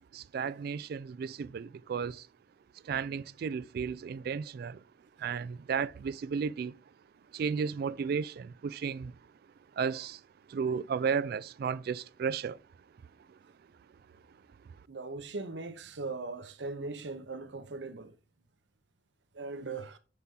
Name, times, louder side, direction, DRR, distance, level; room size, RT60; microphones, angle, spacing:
voice 1, 0.1-2.2 2.9-4.8 5.2-6.8 7.3-9.1 9.8-10.2 10.5-12.6, right 6 dB, 60° right, 0.3 m, -33 dB
voice 2, 14.9-18.1 19.3-20.0, right 3 dB, 80° right, 0.8 m, -39 dB
9.6 x 4.2 x 3.7 m
head